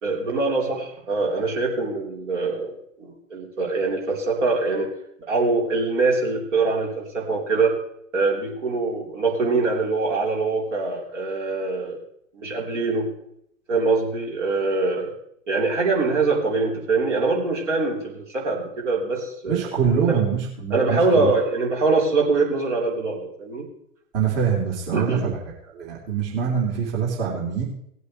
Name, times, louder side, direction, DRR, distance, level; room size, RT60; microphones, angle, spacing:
voice 1, 0.0-2.7 3.0-4.9 5.3-7.8 8.1-12.0 12.3-13.1 13.7-15.1 15.5-19.6 20.0-20.2 20.7-23.7 24.9-25.2, right 3 dB, 60° right, -2 dB, 3.7 m, -23 dB
voice 2, 19.5-21.3 24.1-25.4 25.7-27.6, right 7 dB, 40° right, -3 dB, 3.3 m, -24 dB
18.5 x 8.3 x 3.1 m, 0.73 s
figure-of-eight pair, 105°, 40 cm